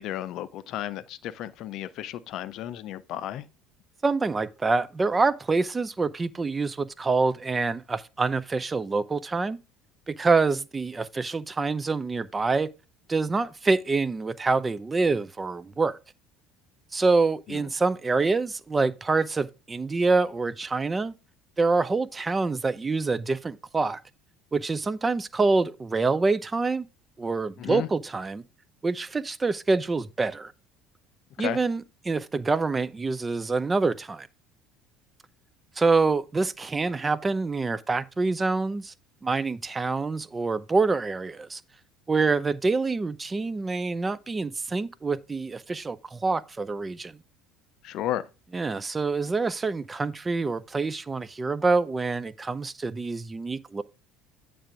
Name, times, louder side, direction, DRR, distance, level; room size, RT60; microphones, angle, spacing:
voice 1, 0.0-3.5 17.5-17.6 27.6-27.9 31.4-31.6 47.8-48.3, left 12 dB, 50° left, 0.5 m, -33 dB
voice 2, 4.0-9.6 10.1-12.7 13.1-16.0 16.9-21.1 21.6-24.0 24.5-26.9 27.2-28.4 28.8-30.5 31.4-34.3 35.8-38.9 39.2-41.6 42.1-47.2 48.5-53.8, right 3 dB, 20° right, 0.4 m, -26 dB
8.7 x 3.4 x 4.9 m
figure-of-eight pair, 60°, 0 cm